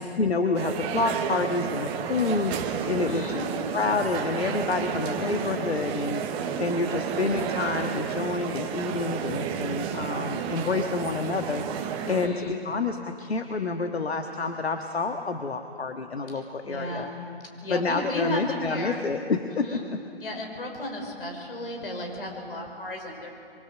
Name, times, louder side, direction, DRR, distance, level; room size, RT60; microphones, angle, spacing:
voice 1, 0.0-3.4 3.7-17.1 17.7-20.0, left 4 dB, 80° left, 5 dB, 1.6 m, -28 dB
sound 1, 0.5-12.3, right 7 dB, 15° right, 1.0 m, -31 dB
voice 2, 2.9-3.5 12.0-12.6 16.3-17.2 17.6-19.0 19.5-19.9 20.2-23.3, left 1 dB, 60° left, 3 dB, 5.9 m, -34 dB
26.0 x 24.0 x 7.6 m, 2.5 s
figure-of-eight pair, 140°, 31 cm